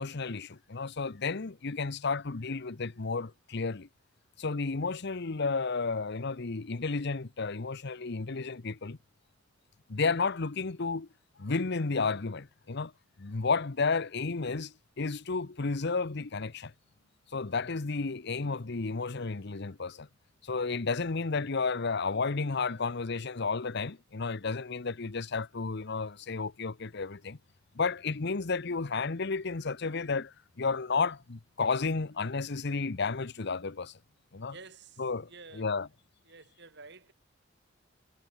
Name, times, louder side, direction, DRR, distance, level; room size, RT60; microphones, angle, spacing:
voice 1, 0.0-3.9 4.4-9.0 9.9-11.1 11.4-12.9 13.2-16.7 17.3-20.1 20.4-27.4 27.7-33.9 34.3-34.5 35.0-35.9, left 4 dB, 60° left, 0.9 m, -32 dB
voice 2, 34.5-35.7 36.3-37.1, right 4 dB, 60° right, 7.8 m, -51 dB
head